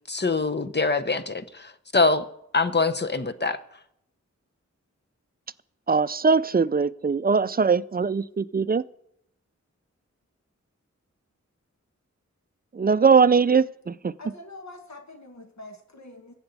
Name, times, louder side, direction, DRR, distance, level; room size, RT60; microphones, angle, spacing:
voice 1, 0.1-2.3 2.5-3.6, left 3 dB, 35° left, 0.8 m, -24 dB
voice 2, 5.9-8.8 12.7-14.1, right 5 dB, 30° right, 0.4 m, -21 dB
voice 3, 14.2-16.3, left 2 dB, 65° left, 1.4 m, -44 dB
21.5 x 8.0 x 4.1 m
wide cardioid pair, 65°, 30 cm